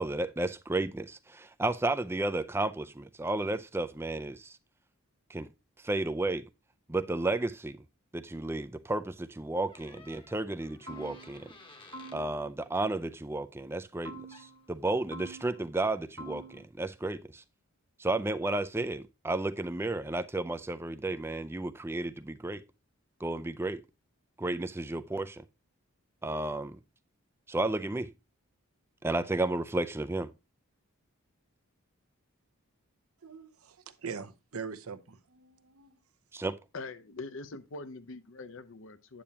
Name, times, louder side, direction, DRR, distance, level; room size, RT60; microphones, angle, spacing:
voice 1, 0.0-4.5 5.3-5.5 5.8-6.4 6.9-7.8 8.1-11.5 12.1-17.4 18.0-22.6 23.2-23.8 24.4-25.4 26.2-26.8 27.5-28.1 29.0-30.3 36.3-36.6, right 2 dB, 10° right, 0.4 m, -32 dB
Door, 9.7-12.2 14.0-14.1 14.3-14.7, left 3 dB, 25° left, 1.0 m, -55 dB
sound 1, 10.9-11.6 11.9-12.6 14.0-14.7 15.1-15.8 16.2-16.6, right 2 dB, 60° right, 1.2 m, -47 dB
voice 2, 33.2-35.9, right 5 dB, 80° right, 0.8 m, -42 dB
voice 3, 36.7-39.2, left 3 dB, 60° left, 0.7 m, -43 dB
8.7 x 8.5 x 2.8 m
head